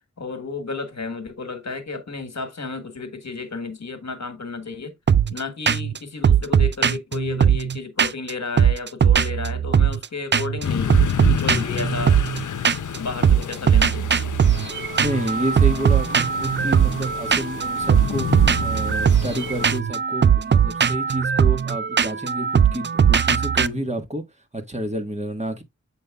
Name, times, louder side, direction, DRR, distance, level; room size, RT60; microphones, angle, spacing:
voice 1, 0.2-4.9 5.3-11.0 11.4-12.2 12.9-14.2, left 4 dB, 65° left, 1.5 m, -32 dB
sound 1, 5.1-5.4 5.7-6.0 6.2-8.3 8.6-10.1 10.3-10.6 10.9-13.0 13.2-23.7, right 7 dB, 40° right, 0.4 m, -19 dB
sound 2, 10.6-19.8, left 7 dB, 85° left, 0.6 m, -30 dB
voice 2, 15.0-18.3 18.6-24.2 24.5-25.6, right 1 dB, 25° right, 1.6 m, -29 dB
7.6 x 5.4 x 2.3 m
wide cardioid pair, 50°, 30 cm